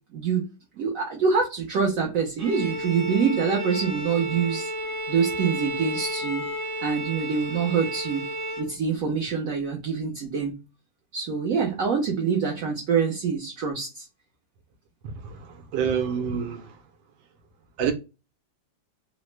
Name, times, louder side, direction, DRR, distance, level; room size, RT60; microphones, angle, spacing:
voice 1, 0.1-0.5 0.8-4.7 5.1-6.4 6.8-8.3 8.6-10.5 11.1-14.0, right 6 dB, 70° right, 0.8 m, -25 dB
Bowed string instrument, 2.4-8.8, equal, 55° right, 1.2 m, -32 dB
voice 2, 15.2-16.7 17.8-17.9, right 7 dB, 90° right, 1.5 m, -27 dB
3.9 x 2.1 x 3.0 m
omnidirectional pair, 2.1 m